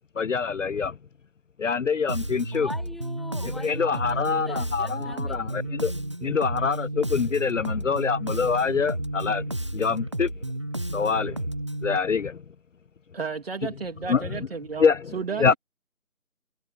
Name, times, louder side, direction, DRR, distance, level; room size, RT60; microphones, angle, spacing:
voice 1, 0.2-0.9 1.6-2.7 3.4-5.9 6.2-9.5 9.7-10.3 10.9-11.4 11.8-12.4 14.1-14.3 14.8-15.1 15.4-15.5, left 5 dB, 60° left, 0.5 m, -25 dB
Bass guitar, 2.1-12.0, right 1 dB, 20° right, 0.9 m, -32 dB
voice 2, 2.5-5.4 15.3-15.6, left 1 dB, ahead, 3.3 m, -42 dB
voice 3, 13.1-15.6, right 5 dB, 40° right, 3.0 m, -33 dB
figure-of-eight pair, 165°, 42 cm